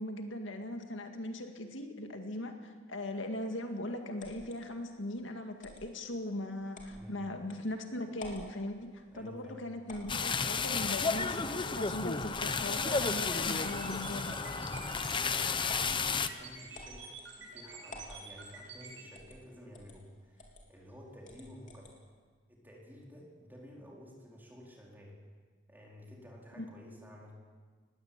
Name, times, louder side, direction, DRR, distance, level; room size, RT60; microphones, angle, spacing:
voice 1, 0.0-14.3 26.6-26.7, left 1 dB, 75° left, 5 dB, 2.0 m, -39 dB
sound 1, 4.2-4.6 5.6-5.9 6.7-7.0 7.5-7.6 8.1-8.5 9.9-10.3 11.0-11.5 12.1-12.8 13.2-14.1 14.7-15.0 15.7-15.9 16.7-17.3 17.9-18.2 19.1-19.4 19.7-20.0 20.4-20.6 21.2-21.9, left 2 dB, 40° left, 3.6 m, -50 dB
voice 2, 6.9-7.2 9.1-9.6 14.3-17.1 17.4-21.9 22.5-25.2 25.7-27.3, equal, 10° right, -2 dB, 4.6 m, -52 dB
sound 2, 10.1-16.3, left 4 dB, 25° left, 0.8 m, -32 dB
sound 3, 12.9-19.0, right 4 dB, 75° right, 7.2 m, -48 dB
20.0 x 16.5 x 8.8 m, 1.5 s
head